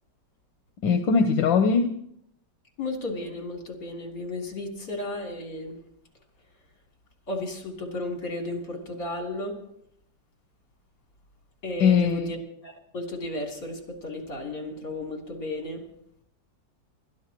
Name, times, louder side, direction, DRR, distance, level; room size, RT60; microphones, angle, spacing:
voice 1, 0.8-1.9 11.8-12.3, left 5 dB, 85° left, 7 dB, 1.6 m, -21 dB
voice 2, 2.8-5.8 7.3-9.6 11.6-12.4 12.6-15.9, left 2 dB, 65° left, 1 dB, 3.9 m, -34 dB
29.0 x 13.5 x 3.0 m, 0.73 s
omnidirectional pair, 2.0 m